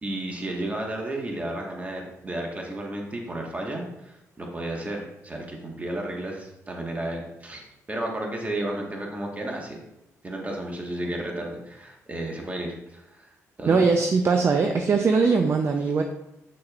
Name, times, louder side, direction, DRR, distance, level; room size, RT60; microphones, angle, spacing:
voice 1, 0.0-9.8 10.2-13.3 13.6-13.9, right 1 dB, 25° right, 0 dB, 1.5 m, -33 dB
voice 2, 13.7-16.0, right 4 dB, 45° right, 4 dB, 0.6 m, -21 dB
7.9 x 6.3 x 2.5 m, 0.88 s
cardioid pair, 80°, 6 cm